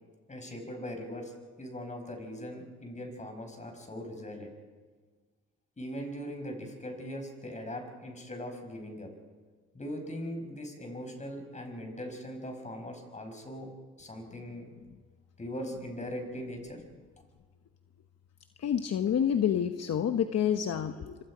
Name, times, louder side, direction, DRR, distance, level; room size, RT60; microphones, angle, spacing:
voice 1, 0.3-1.3 1.6-4.5 5.8-9.1 9.7-13.7 14.0-14.7 15.4-16.8, equal, 25° left, 4 dB, 5.5 m, -40 dB
voice 2, 18.6-21.2, left 9 dB, 55° left, 7 dB, 1.1 m, -28 dB
25.5 x 25.0 x 5.0 m, 1.4 s
cardioid pair, 90°, 30 cm